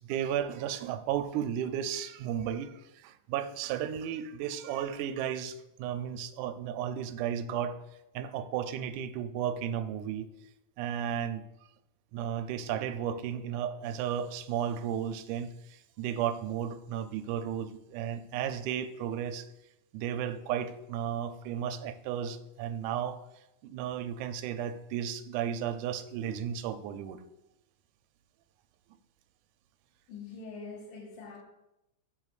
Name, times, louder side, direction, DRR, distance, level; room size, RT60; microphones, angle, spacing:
voice 1, 0.0-7.8 8.1-10.3 10.8-11.4 12.1-19.5 19.9-23.2 23.6-27.2, right 9 dB, 80° right, 9 dB, 2.0 m, -34 dB
voice 2, 30.1-31.4, left 4 dB, 90° left, 0 dB, 2.8 m, -44 dB
12.5 x 7.6 x 2.4 m, 0.88 s
omnidirectional pair, 3.6 m